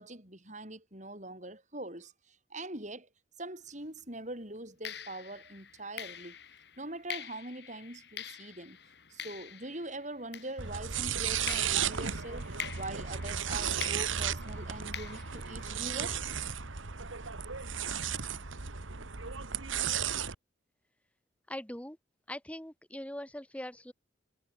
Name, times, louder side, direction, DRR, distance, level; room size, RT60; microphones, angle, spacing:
voice 1, 0.0-3.1 3.4-6.4 6.8-8.8 9.1-12.5 12.7-16.2, right 2 dB, 40° right, 6.9 m, -43 dB
sound 1, 3.7-3.9 4.8-11.0 11.5-16.2, left 9 dB, 55° left, 3.6 m, -46 dB
sound 2, 10.6-20.3, right 8 dB, 85° right, 1.8 m, -34 dB
voice 2, 21.5-22.0 22.3-23.9, left 1 dB, 5° left, 1.4 m, -41 dB
head